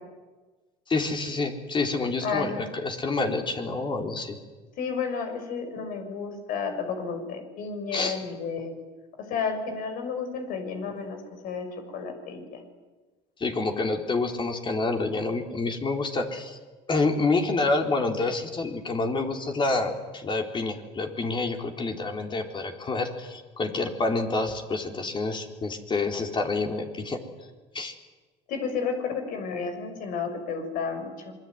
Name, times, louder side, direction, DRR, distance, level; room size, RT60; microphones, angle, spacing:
voice 1, 0.9-4.4 7.9-8.2 13.4-16.6 16.9-27.2 27.7-27.9, left 3 dB, 30° left, 4 dB, 4.1 m, -28 dB
voice 2, 2.2-2.7 4.8-8.7 9.3-12.6 28.5-31.3, left 5 dB, 65° left, 6 dB, 6.6 m, -32 dB
26.5 x 22.0 x 9.6 m, 1.3 s
supercardioid pair, 90°, 15 cm